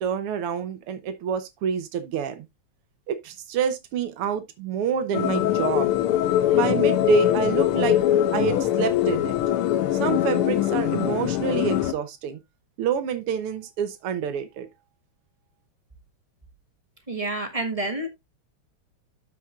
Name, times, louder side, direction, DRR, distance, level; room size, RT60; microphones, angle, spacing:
voice 1, 0.0-2.5 3.1-5.9 6.5-8.0 8.3-9.4 9.9-12.4 12.8-14.7, right 7 dB, 85° right, 2.0 m, -27 dB
sound 1, 5.1-11.9, left 12 dB, 90° left, 1.6 m, -22 dB
voice 2, 17.1-18.1, right 2 dB, 25° right, 0.9 m, -28 dB
13.0 x 5.4 x 2.4 m
omnidirectional pair, 2.4 m